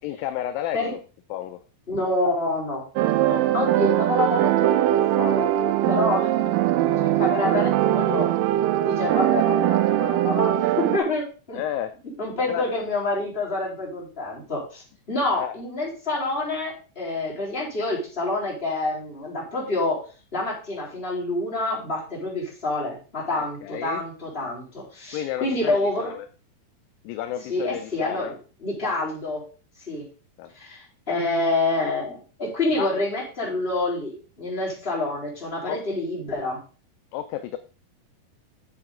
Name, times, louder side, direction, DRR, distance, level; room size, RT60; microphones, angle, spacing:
voice 1, 0.0-1.0 1.3-1.6 3.2-3.5 11.5-11.9 12.5-12.7 15.3-15.6 23.4-24.0 25.1-26.3 27.0-28.4 30.4-30.5 32.7-32.9 35.6-35.8 37.1-37.6, left 12 dB, 80° left, 10 dB, 2.1 m, -31 dB
voice 2, 1.9-2.8 3.5-5.5 5.9-6.4 7.0-8.3 8.8-11.6 12.2-20.0 20.3-26.1 27.5-29.4 29.9-30.1 30.5-36.6, left 2 dB, 15° left, -4 dB, 3.5 m, -27 dB
sound 1, 3.0-11.0, right 13 dB, 80° right, 2.0 m, -21 dB
9.2 x 7.7 x 3.7 m, 0.35 s
omnidirectional pair, 4.3 m